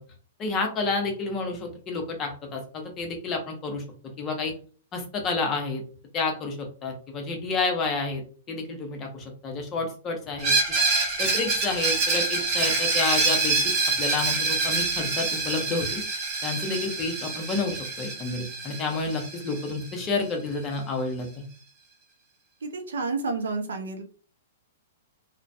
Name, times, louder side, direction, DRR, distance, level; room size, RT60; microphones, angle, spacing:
voice 1, 0.4-3.8 4.2-4.5 4.9-5.8 6.1-10.5 11.2-13.7 14.0-16.0 16.4-21.5, left 3 dB, 30° left, 3 dB, 0.8 m, -30 dB
Screech, 10.4-20.0, right 3 dB, 35° right, 1.0 m, -26 dB
voice 2, 22.6-24.0, right 3 dB, 75° right, 6 dB, 0.5 m, -30 dB
2.4 x 2.1 x 2.6 m, 0.39 s
hypercardioid pair, 115°, 0 cm